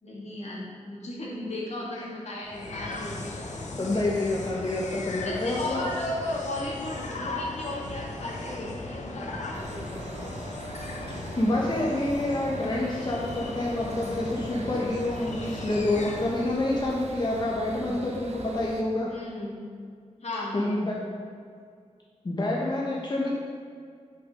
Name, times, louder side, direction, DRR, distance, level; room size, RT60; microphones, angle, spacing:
voice 1, 0.0-3.9 5.2-10.0 17.8-18.1 19.1-19.7 20.2-21.2, left 1 dB, 70° left, -4 dB, 1.8 m, -36 dB
sound 1, 2.4-16.7, left 2 dB, 90° left, 0.8 m, -37 dB
voice 2, 3.8-5.8 11.3-19.1 20.5-21.0 22.2-23.3, left 2 dB, 35° left, -4 dB, 1.1 m, -27 dB
sound 2, 9.5-18.8, right 3 dB, 65° right, 0.7 m, -42 dB
6.7 x 5.3 x 5.2 m, 2.1 s
wide cardioid pair, 95°, 12 cm